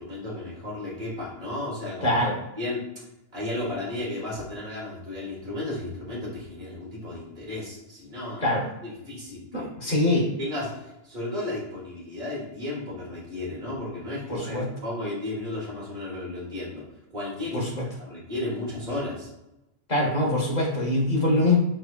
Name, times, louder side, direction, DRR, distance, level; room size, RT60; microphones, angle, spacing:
voice 1, 0.0-2.3 2.6-3.0 3.3-8.5 8.8-10.0 10.4-16.8 17.1-17.6 18.0-19.3, left 1 dB, 40° right, -5 dB, 1.9 m, -34 dB
voice 2, 9.5-10.3 14.3-14.6 17.5-17.6 19.9-21.6, left 1 dB, 35° left, -3 dB, 1.3 m, -23 dB
4.9 x 4.2 x 2.4 m, 0.91 s
omnidirectional pair, 1.3 m